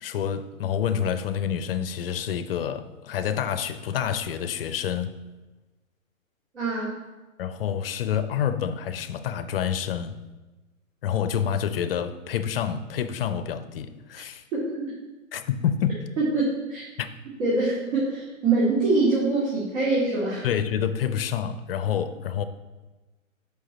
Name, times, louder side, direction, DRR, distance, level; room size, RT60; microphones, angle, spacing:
voice 1, 0.0-5.2 7.4-10.2 11.0-14.4 15.3-16.0 17.0-17.1 20.4-22.4, left 8 dB, 45° left, 0.5 m, -28 dB
voice 2, 6.5-7.0 14.5-14.6 16.2-16.8 17.4-20.5, right 3 dB, 60° right, 2.4 m, -24 dB
6.4 x 5.2 x 4.0 m
figure-of-eight pair, 120°, 41 cm